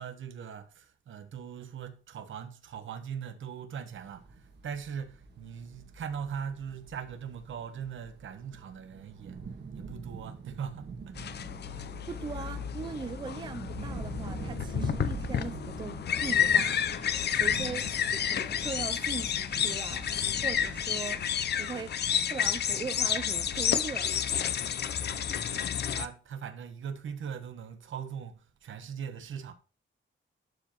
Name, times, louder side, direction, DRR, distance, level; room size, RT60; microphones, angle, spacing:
voice 1, 0.0-9.4 9.7-11.2 17.5-18.2 24.5-29.5, right 7 dB, 90° right, 1.1 m, -41 dB
sound 1, 3.9-21.5, right 4 dB, 60° right, 1.6 m, -44 dB
sound 2, 11.2-26.1, left 9 dB, 60° left, 0.6 m, -30 dB
voice 2, 12.1-16.8 17.3-20.1 20.4-22.0 22.3-24.1, right 6 dB, 25° right, 0.4 m, -40 dB
12.0 x 4.8 x 3.0 m
wide cardioid pair, 160°, 20 cm